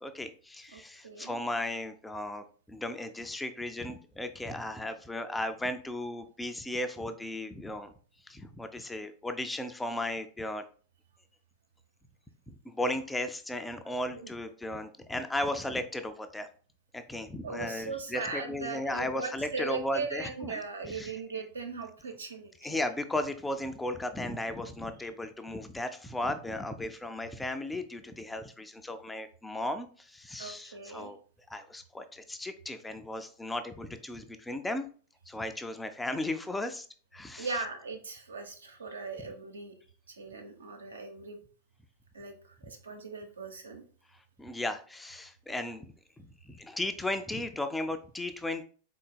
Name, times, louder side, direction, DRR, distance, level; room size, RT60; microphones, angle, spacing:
voice 1, 0.0-7.9 8.3-10.6 12.5-16.5 16.9-21.1 22.6-31.2 31.5-34.9 35.3-36.9 37.1-37.6 44.4-48.6, left 1 dB, 10° left, 8 dB, 0.3 m, -36 dB
voice 2, 0.7-1.4 14.1-14.3 17.4-22.8 25.0-25.1 30.4-31.1 37.4-39.7 40.1-41.4 42.1-43.8, right 4 dB, 75° right, 4 dB, 0.7 m, -39 dB
3.8 x 3.8 x 2.2 m, 0.41 s
figure-of-eight pair, 90°, 0 cm